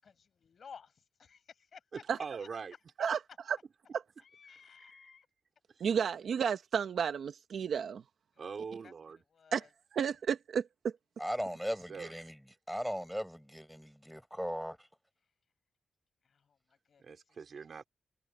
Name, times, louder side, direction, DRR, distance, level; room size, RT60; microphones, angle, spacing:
voice 1, 0.0-2.5 4.2-5.3 8.3-8.4 8.8-8.9 9.3-9.7 16.2-17.4, left 6 dB, 55° left, 6.7 m, -56 dB
voice 2, 1.9-2.7 3.1-3.2 4.8-5.1 5.7-5.9 8.4-9.2 11.6-12.1 17.0-17.8, right 5 dB, 50° right, 3.8 m, -43 dB
voice 3, 5.8-8.0 9.5-9.7 9.9-10.9, right 7 dB, 75° right, 1.2 m, -32 dB
voice 4, 11.2-12.4 12.7-14.9, equal, ahead, 4.7 m, -38 dB
wide cardioid pair, 135°, 0 cm